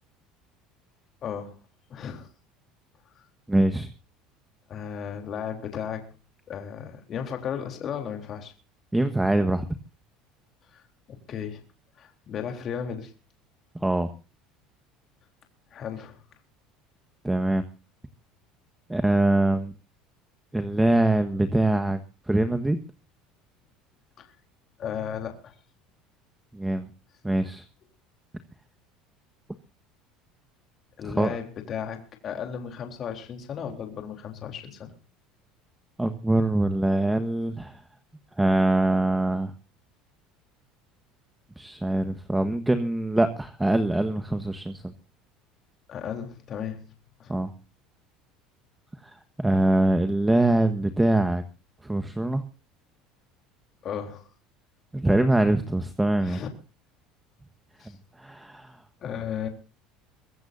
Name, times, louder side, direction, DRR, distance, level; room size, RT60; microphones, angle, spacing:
voice 1, 1.2-1.6 1.9-2.3 3.1-3.2 4.7-6.1 6.5-8.5 10.7-10.8 11.1-11.6 12.0-13.1 15.7-16.2 24.2-24.3 24.8-25.5 31.0-34.9 45.9-46.8 47.2-47.3 53.8-54.2 56.2-56.5 57.8-57.9 59.0-59.5, left 8 dB, 45° left, 4 dB, 3.7 m, -35 dB
voice 2, 3.5-3.9 8.9-9.6 13.8-14.1 17.2-17.6 18.9-19.7 20.5-22.0 22.3-22.8 26.5-26.9 27.2-27.6 31.0-31.4 36.0-37.8 38.4-39.5 41.6-44.9 47.3-47.5 49.0-51.4 51.8-52.4 54.9-56.4 58.2-58.8, right 1 dB, 10° right, 8 dB, 1.4 m, -23 dB
23.5 x 15.5 x 2.7 m, 0.34 s
supercardioid pair, 105°, 0 cm